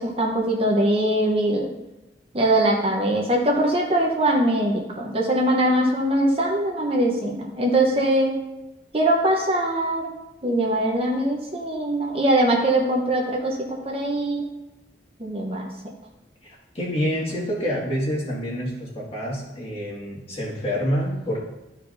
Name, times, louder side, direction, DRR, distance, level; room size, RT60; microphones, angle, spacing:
voice 1, 0.0-1.7 2.3-8.4 8.9-10.1 10.4-14.4 15.2-15.7, right 1 dB, 30° right, -1 dB, 0.9 m, -22 dB
voice 2, 16.4-21.4, equal, 30° left, -5 dB, 2.0 m, -27 dB
13.0 x 4.7 x 2.6 m, 0.98 s
head